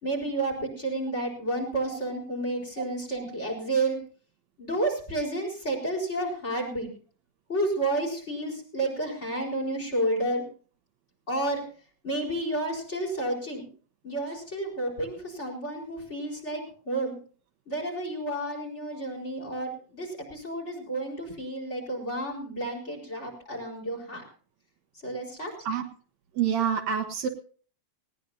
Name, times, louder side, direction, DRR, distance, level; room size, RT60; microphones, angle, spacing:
voice 1, 0.0-4.0 4.6-6.9 7.5-10.4 11.3-11.6 12.0-13.6 14.0-17.1 17.7-24.2 25.0-25.5, right 1 dB, 20° left, 1 dB, 4.7 m, -31 dB
voice 2, 26.4-27.3, right 8 dB, 70° right, 5 dB, 2.5 m, -27 dB
19.5 x 18.0 x 2.7 m, 0.41 s
omnidirectional pair, 3.3 m